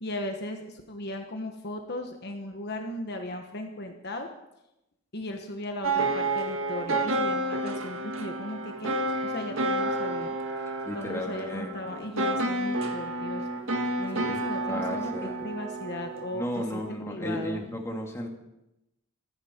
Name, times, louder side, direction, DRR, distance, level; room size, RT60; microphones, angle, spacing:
voice 1, 0.0-4.3 5.1-10.4 10.9-13.5 14.0-17.8, left 1 dB, 50° left, 4 dB, 1.3 m, -37 dB
sound 1, 5.8-16.9, right 2 dB, 65° right, 1.9 m, -30 dB
voice 2, 10.8-12.0 14.2-15.4 16.3-18.3, equal, 15° left, 0 dB, 2.3 m, -34 dB
25.5 x 10.5 x 4.5 m, 0.90 s
head